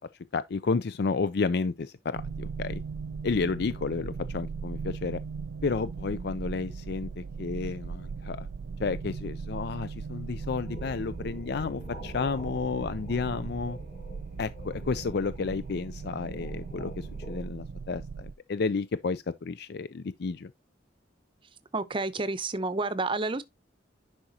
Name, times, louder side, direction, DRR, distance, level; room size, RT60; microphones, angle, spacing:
voice 1, 0.3-2.8 3.2-5.2 5.6-8.5 8.8-13.8 14.4-20.5, left 4 dB, 60° left, 0.5 m, -31 dB
sound 1, 2.1-18.3, right 5 dB, 80° right, 0.4 m, -38 dB
sound 2, 10.4-17.5, equal, 40° left, 3.7 m, -45 dB
voice 2, 21.7-23.4, right 3 dB, 30° right, 0.7 m, -30 dB
10.5 x 4.9 x 2.8 m
head